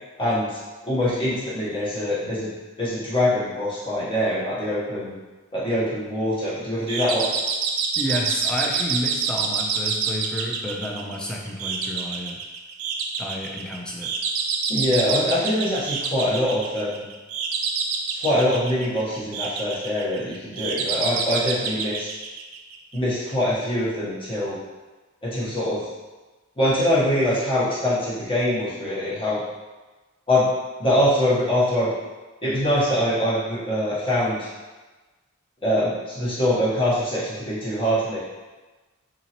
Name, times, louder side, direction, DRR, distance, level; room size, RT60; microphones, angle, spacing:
voice 1, 0.2-0.6 0.8-2.5 2.8-5.1 5.5-7.3 14.7-17.0 18.2-22.1 22.9-24.6 25.2-25.8 26.6-29.4 30.3-30.5 30.8-31.9 32.4-34.5 35.6-38.2, left 1 dB, 25° left, -10 dB, 1.2 m, -23 dB
sound 1, 6.9-23.0, right 5 dB, 85° right, 0.4 m, -27 dB
voice 2, 8.0-12.4 13.2-14.1, equal, 5° left, -2 dB, 0.4 m, -30 dB
3.8 x 2.8 x 2.9 m, 1.2 s
head